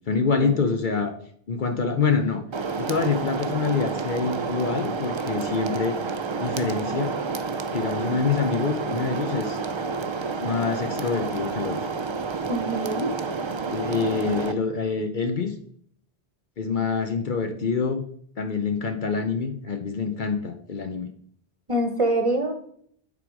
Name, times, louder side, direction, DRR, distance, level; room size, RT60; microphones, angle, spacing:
voice 1, 0.1-1.1 1.5-2.4 2.8-6.0 6.4-7.1 7.7-9.6 10.4-11.8 13.7-15.5 16.6-18.0 18.4-21.1, left 5 dB, 50° left, 7 dB, 0.8 m, -26 dB
sound 1, 2.5-14.5, right 4 dB, 50° right, 0.3 m, -29 dB
voice 2, 12.5-13.1 21.7-22.5, right 1 dB, 30° right, 5 dB, 0.8 m, -24 dB
9.2 x 3.8 x 4.7 m, 0.63 s
omnidirectional pair, 1.1 m